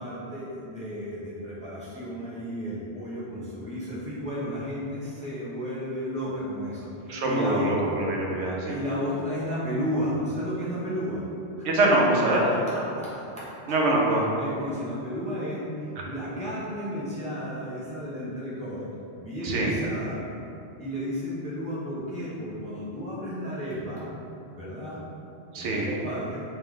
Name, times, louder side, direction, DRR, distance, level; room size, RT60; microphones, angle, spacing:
voice 1, 0.0-7.7 8.6-11.2 11.6-11.9 12.3-13.4 13.8-14.0 14.4-18.9 19.1-20.2 20.8-24.1 24.5-25.0 25.5-26.4, equal, 10° left, -9 dB, 0.6 m, -33 dB
voice 2, 7.1-8.8 11.6-12.4 13.7-14.2 19.4-19.7 25.5-25.9, right 2 dB, 75° right, -2 dB, 0.9 m, -24 dB
3.3 x 3.2 x 3.6 m, 2.7 s
omnidirectional pair, 1.1 m